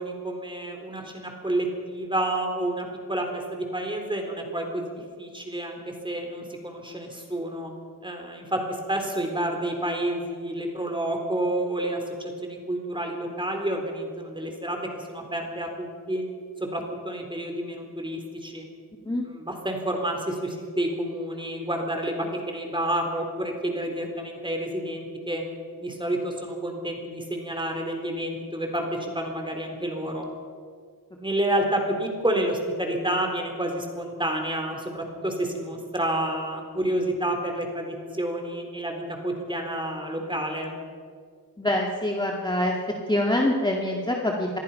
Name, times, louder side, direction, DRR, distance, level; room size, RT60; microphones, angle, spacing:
voice 1, 0.0-7.7 8.0-16.2 16.6-18.7 19.2-25.4 25.8-30.3 31.2-40.8, right 1 dB, 10° right, 3 dB, 4.0 m, -29 dB
voice 2, 41.6-42.7 43.1-44.6, left 1 dB, 10° left, -1 dB, 2.0 m, -25 dB
26.5 x 21.5 x 5.7 m, 2.1 s
wide cardioid pair, 145°, 39 cm